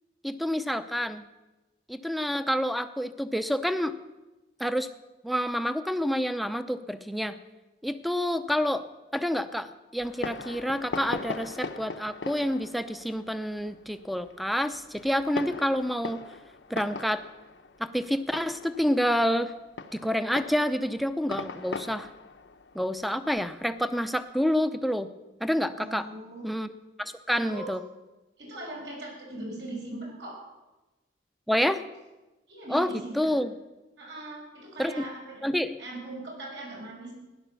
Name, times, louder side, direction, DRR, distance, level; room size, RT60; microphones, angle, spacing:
voice 1, 0.2-1.3 1.9-3.9 4.6-4.9 5.2-7.4 7.8-8.8 9.1-16.2 16.7-17.2 17.8-19.5 19.9-22.1 22.7-25.1 25.4-26.1 26.4-26.7 27.0-27.8 31.5-31.8 32.7-33.5 34.8-35.1 35.4-35.8, equal, ahead, 11 dB, 0.6 m, -28 dB
Fireworks, 10.0-24.1, left 3 dB, 80° left, 0.9 m, -40 dB
voice 2, 25.8-26.5 27.3-27.7 28.4-30.4 32.5-33.3 34.0-35.5 35.8-37.1, right 1 dB, 75° right, -2 dB, 6.2 m, -40 dB
16.0 x 11.0 x 7.0 m, 1.1 s
head